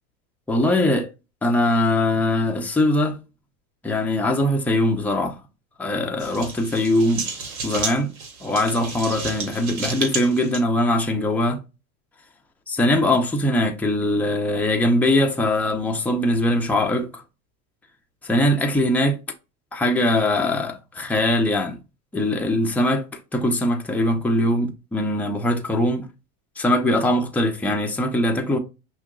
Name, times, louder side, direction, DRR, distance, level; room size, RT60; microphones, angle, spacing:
voice 1, 0.5-1.1 1.4-3.2 3.8-5.4 5.8-7.3 7.6-8.1 8.4-11.6 12.7-17.2 18.2-19.2 19.7-21.8 22.1-23.0 23.3-26.1 26.6-28.6, left 1 dB, 5° left, 0.6 m, -21 dB
sound 1, 6.2-10.6, right 4 dB, 85° right, 1.4 m, -31 dB
5.8 x 2.4 x 2.3 m
supercardioid pair, 105°, 43 cm